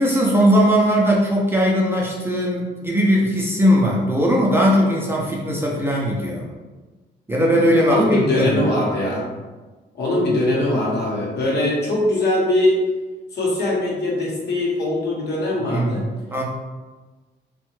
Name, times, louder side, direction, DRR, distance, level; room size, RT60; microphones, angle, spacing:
voice 1, 0.0-6.5 7.3-8.6 15.7-16.0 16.3-16.4, equal, 10° right, -3 dB, 0.5 m, -19 dB
voice 2, 7.9-9.2 9.9-12.8 13.3-16.1, left 1 dB, 55° left, -4 dB, 0.9 m, -21 dB
2.6 x 2.2 x 3.0 m, 1.2 s
cardioid pair, 90°, 20 cm